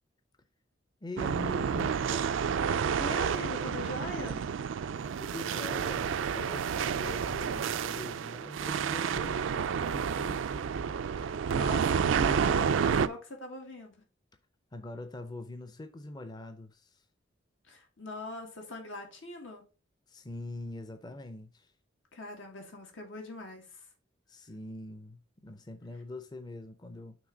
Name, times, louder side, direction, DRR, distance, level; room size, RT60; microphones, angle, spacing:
voice 1, 1.0-2.3 5.2-10.5 14.7-17.0 20.1-21.7 24.3-27.2, left 2 dB, 20° left, 0.5 m, -43 dB
sound 1, 1.2-13.1, right 7 dB, 85° right, 0.4 m, -30 dB
voice 2, 3.0-4.4 11.1-14.0 17.7-19.6 22.1-23.9, left 2 dB, 90° left, 1.9 m, -42 dB
6.0 x 3.3 x 4.9 m
head